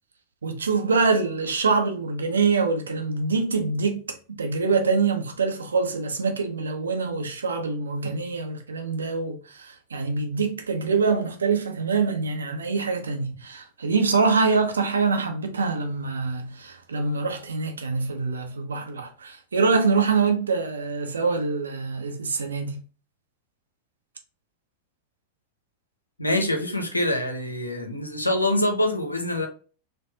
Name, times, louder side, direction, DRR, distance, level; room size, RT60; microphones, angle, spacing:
voice 1, 0.4-4.0 4.4-22.8, right 4 dB, 70° right, 0.8 m, -25 dB
voice 2, 26.2-29.5, left 1 dB, 85° left, 0.8 m, -25 dB
4.5 x 2.5 x 2.7 m
figure-of-eight pair, 90°, 0 cm